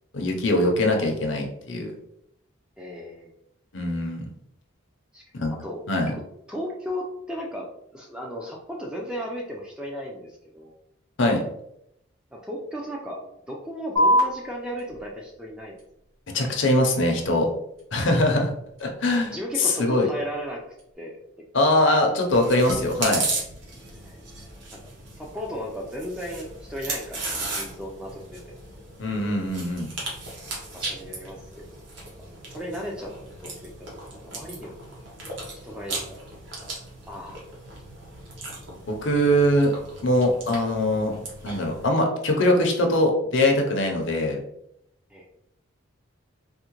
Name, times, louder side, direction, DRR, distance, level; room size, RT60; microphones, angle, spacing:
voice 1, 0.1-1.9 3.7-4.3 5.3-5.5 5.9-6.1 11.2-11.4 16.3-17.5 17.9-18.5 18.8-19.3 19.6-20.1 21.5-23.2 29.0-29.9 38.9-39.7 40.0-41.2 41.4-44.4, left 1 dB, 60° left, 3 dB, 0.6 m, -22 dB
voice 2, 2.8-3.3 5.1-5.2 5.5-6.2 6.5-10.7 12.3-15.8 19.3-20.6 21.0-21.2 24.0-24.2 24.7-24.8 25.2-28.6 30.7-31.8 32.5-33.1 33.4-33.9 34.2-34.8 35.6-36.4 36.6-36.7 37.1-37.4 45.1-45.3, equal, 5° right, -1 dB, 0.3 m, -35 dB
sound 1, 14.0-20.9, equal, 85° right, 1.1 m, -30 dB
Chewing mastication, 22.3-41.9, right 2 dB, 60° right, 0.9 m, -36 dB
3.6 x 2.1 x 2.9 m, 0.77 s
head